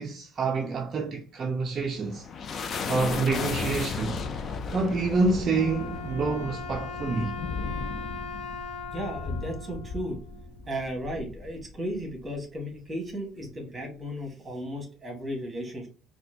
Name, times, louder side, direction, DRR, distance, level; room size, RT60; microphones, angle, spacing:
voice 1, 0.0-2.3 2.9-4.2 4.7-7.4, right 3 dB, 35° right, 0.4 m, -27 dB
sound 1, 1.6-12.3, left 5 dB, 40° left, 0.4 m, -35 dB
Wind instrument woodwind instrument, 5.5-10.7, left 4 dB, 90° left, 0.9 m, -40 dB
voice 2, 8.9-10.2 10.7-15.9, equal, 15° right, 1.3 m, -35 dB
4.2 x 2.2 x 2.7 m
cardioid pair, 130°, 0 cm